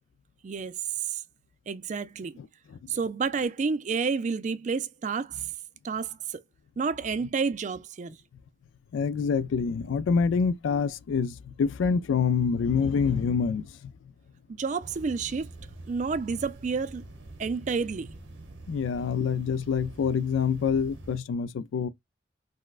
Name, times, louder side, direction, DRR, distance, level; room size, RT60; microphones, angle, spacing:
voice 1, 0.4-0.8 1.0-1.2 1.7-2.4 2.9-5.5 5.8-6.4 6.8-8.2 14.6-15.5 15.9-17.0 17.4-18.1, right 5 dB, 40° right, 0.3 m, -30 dB
voice 2, 2.4-2.8 8.9-13.9 18.7-21.9, left 6 dB, 85° left, 0.3 m, -26 dB
sound 1, 14.8-21.2, right 2 dB, 75° right, 0.8 m, -45 dB
4.2 x 2.2 x 2.3 m
head